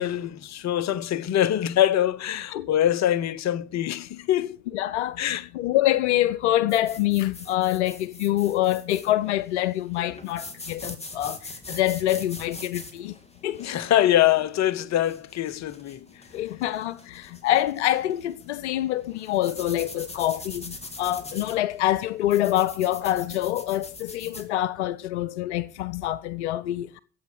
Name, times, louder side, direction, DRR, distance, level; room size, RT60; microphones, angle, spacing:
voice 1, 0.0-4.6 5.2-5.5 13.6-16.1, left 12 dB, 50° left, 1.0 m, -24 dB
voice 2, 4.7-13.1 13.4-13.6 16.3-27.0, left 14 dB, 85° left, 0.6 m, -26 dB
sound 1, 6.7-24.5, left 2 dB, 20° left, 3.1 m, -43 dB
15.0 x 8.4 x 6.4 m
hypercardioid pair, 60°, 34 cm